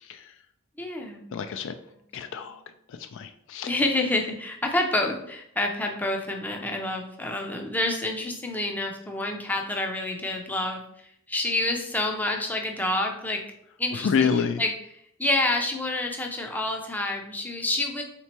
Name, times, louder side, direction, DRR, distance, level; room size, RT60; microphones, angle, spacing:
voice 1, 0.8-1.3 2.2-2.4 3.7-13.4 13.8-14.7 15.2-18.0, left 2 dB, 10° left, 2 dB, 0.5 m, -28 dB
voice 2, 1.3-1.7 2.1-2.6 2.9-3.7 14.0-14.6, left 6 dB, 60° left, 9 dB, 0.3 m, -27 dB
3.4 x 3.0 x 4.3 m, 0.72 s
head